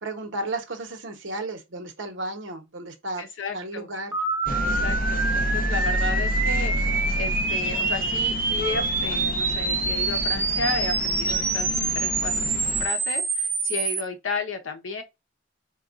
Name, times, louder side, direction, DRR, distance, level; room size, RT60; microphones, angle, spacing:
voice 1, 0.0-3.2 3.5-4.1 4.5-4.6, right 2 dB, 65° right, 0.9 m, -33 dB
voice 2, 3.2-3.9 4.6-6.7 7.2-11.7 12.0-15.0, left 3 dB, 75° left, 0.8 m, -33 dB
sound 1, 4.1-14.0, right 3 dB, 10° right, 0.4 m, -26 dB
sound 2, 4.5-12.9, equal, 45° left, 0.6 m, -30 dB
4.3 x 2.3 x 2.4 m
head